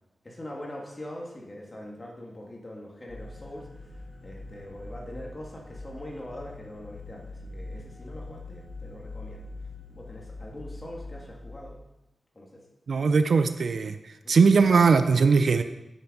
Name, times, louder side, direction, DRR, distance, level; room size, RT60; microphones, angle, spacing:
voice 1, 0.2-9.5 9.9-11.8 12.3-12.6 14.2-14.4, left 1 dB, 25° left, -2 dB, 2.3 m, -42 dB
sound 1, 3.1-11.6, left 2 dB, 85° left, 2.4 m, -43 dB
voice 2, 12.9-14.0 14.3-15.6, right 5 dB, 70° right, 10 dB, 0.6 m, -20 dB
8.8 x 7.0 x 5.4 m, 0.93 s
wide cardioid pair, 115°, 0 cm